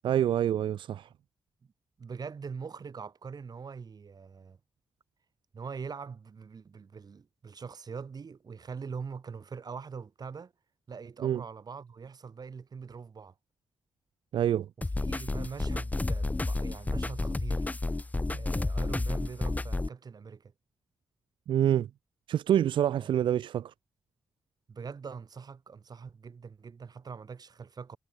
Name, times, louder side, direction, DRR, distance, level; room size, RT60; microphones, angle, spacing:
voice 1, 0.0-1.1 11.2-11.4 14.3-14.7 21.5-21.9 22.3-23.7, right 10 dB, 90° right, 0.5 m, -26 dB
voice 2, 2.0-4.6 5.5-10.5 10.9-13.3 15.0-17.7 18.4-20.5 23.0-23.1 24.7-28.0, right 5 dB, 55° right, 2.3 m, -43 dB
sound 1, 14.8-19.9, left 2 dB, 20° left, 0.7 m, -31 dB
cardioid pair, 70°, 8 cm